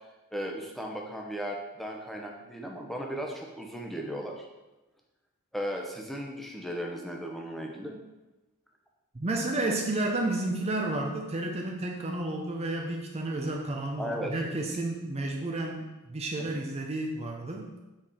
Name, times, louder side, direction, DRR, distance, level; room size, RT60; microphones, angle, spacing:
voice 1, 0.3-4.4 5.5-8.0 14.0-14.3, equal, ahead, 0 dB, 0.9 m, -36 dB
voice 2, 9.1-17.7, right 2 dB, 30° right, 2 dB, 0.7 m, -31 dB
7.5 x 4.8 x 4.3 m, 1.1 s
head